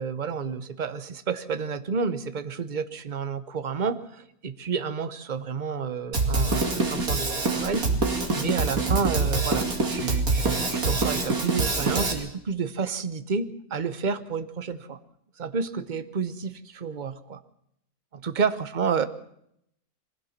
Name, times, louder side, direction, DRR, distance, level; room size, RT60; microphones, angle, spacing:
voice 1, 0.0-15.0 15.4-17.4 18.1-19.1, right 5 dB, 35° right, 11 dB, 1.0 m, -30 dB
Drum kit, 6.1-12.1, right 3 dB, 60° right, 3.0 m, -25 dB
22.5 x 16.0 x 7.3 m, 0.74 s
omnidirectional pair, 1.7 m